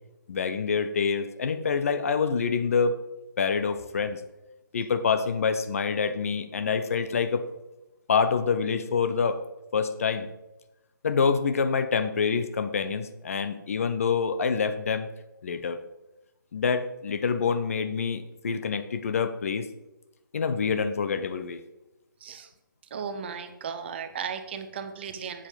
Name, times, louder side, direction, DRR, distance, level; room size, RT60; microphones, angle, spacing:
voice 1, 0.3-3.1 3.4-4.2 4.7-7.4 8.1-9.4 9.7-10.3 11.0-15.1 15.4-15.8 16.5-19.7 20.3-21.6, left 5 dB, 40° left, 10 dB, 0.6 m, -26 dB
voice 2, 22.9-25.5, right 6 dB, 30° right, 9 dB, 0.6 m, -36 dB
7.5 x 7.1 x 5.1 m, 0.96 s
figure-of-eight pair, 145°, 11 cm